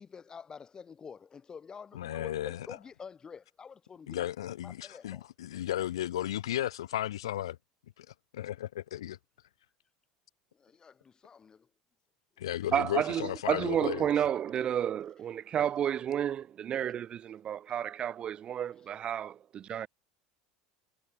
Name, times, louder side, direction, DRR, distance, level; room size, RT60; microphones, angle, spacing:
voice 1, 0.0-4.3 4.6-5.2 10.6-11.7, left 6 dB, 30° left, 2.9 m, -48 dB
voice 2, 1.9-2.8 4.1-7.6 8.0-9.2 12.4-14.1, left 12 dB, 80° left, 0.4 m, -35 dB
voice 3, 12.7-19.9, right 9 dB, 40° right, 1.0 m, -31 dB
hypercardioid pair, 80°, 3 cm